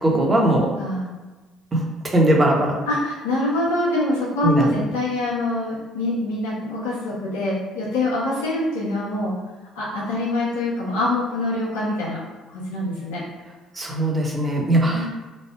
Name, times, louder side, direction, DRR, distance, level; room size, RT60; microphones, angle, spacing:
voice 1, 0.0-0.7 1.7-2.8 4.4-4.7 13.7-15.1, right 1 dB, 30° right, -1 dB, 1.1 m, -20 dB
voice 2, 0.8-1.1 2.9-9.3 9.7-12.2 12.5-13.2 14.8-15.1, left 2 dB, 85° left, -7 dB, 1.0 m, -25 dB
3.2 x 2.4 x 4.4 m, 1.2 s
hypercardioid pair, 60°, 0 cm